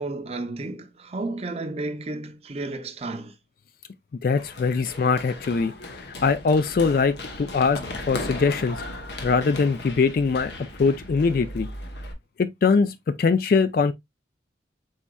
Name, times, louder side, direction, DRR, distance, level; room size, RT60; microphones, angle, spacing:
voice 1, 0.0-3.3, right 2 dB, 35° right, 0.6 m, -32 dB
voice 2, 4.2-8.8 9.2-10.5 10.8-11.7 12.4-13.9, left 4 dB, 50° left, 0.3 m, -22 dB
Run, 4.4-12.1, left 1 dB, 70° left, 1.0 m, -37 dB
4.8 x 4.1 x 2.2 m
head